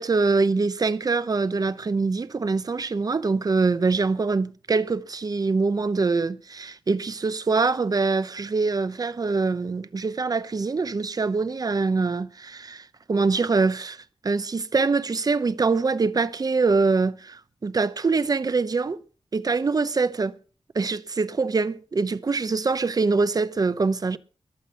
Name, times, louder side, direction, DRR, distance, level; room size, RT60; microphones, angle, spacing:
voice 1, 0.0-14.0 14.2-19.0 19.3-20.3 20.7-24.2, right 4 dB, 45° right, 0.8 m, -24 dB
22.0 x 8.1 x 5.6 m
wide cardioid pair, 120°, 9 cm